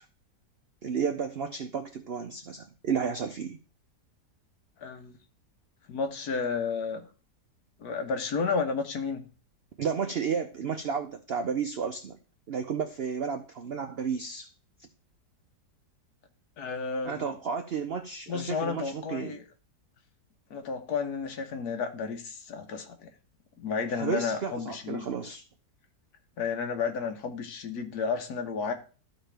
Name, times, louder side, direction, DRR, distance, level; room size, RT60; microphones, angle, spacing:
voice 1, 0.8-3.6 9.8-12.2 12.5-14.5 17.0-19.4 24.0-25.4, right 6 dB, 70° right, 7 dB, 0.5 m, -32 dB
voice 2, 4.8-5.2 5.9-7.1 7.8-9.2 16.6-17.3 18.3-19.4 20.5-23.1 23.6-25.1 26.4-28.7, left 5 dB, 65° left, 5 dB, 1.5 m, -32 dB
13.0 x 4.4 x 3.4 m, 0.35 s
omnidirectional pair, 1.8 m